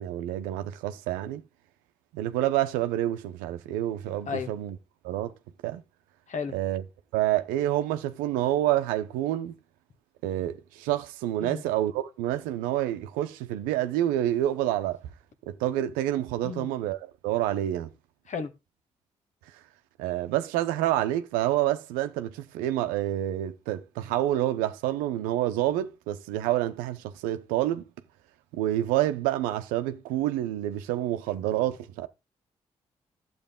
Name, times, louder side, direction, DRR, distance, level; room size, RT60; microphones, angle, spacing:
voice 1, 0.0-1.4 2.1-4.8 5.0-5.3 5.6-5.8 6.5-6.8 7.1-9.5 10.2-15.0 15.5-17.9 20.0-27.8 28.5-32.1, right 13 dB, 90° right, 0.7 m, -28 dB
voice 2, 4.3-4.5 6.3-6.6 11.4-11.6 16.4-16.7 18.3-18.5, left 6 dB, 60° left, 1.6 m, -33 dB
12.0 x 7.8 x 3.7 m
hypercardioid pair, 45°, 14 cm